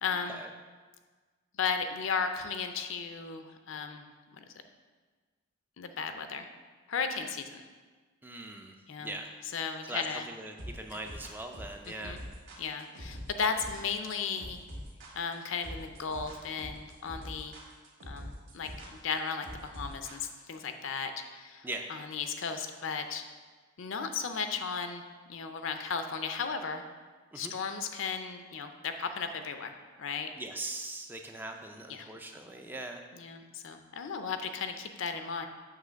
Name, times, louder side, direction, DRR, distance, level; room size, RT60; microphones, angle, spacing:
voice 1, 0.0-0.4 1.6-4.1 4.4-4.5 5.8-6.5 6.9-7.6 8.9-9.2 9.5-10.2 10.9-11.0 11.9-12.2 12.6-14.6 15.1-17.6 18.1-23.2 23.8-26.8 27.3-30.3 31.9-32.1 33.1-35.5, left 5 dB, 60° left, 7 dB, 0.5 m, -35 dB
voice 2, 8.2-9.3 9.9-12.2 21.6-21.9 27.3-27.5 30.4-33.0, right 2 dB, 10° right, 4 dB, 0.3 m, -41 dB
sound 1, 10.6-20.6, equal, 55° right, 1.5 m, -44 dB
7.4 x 3.2 x 6.2 m, 1.4 s
head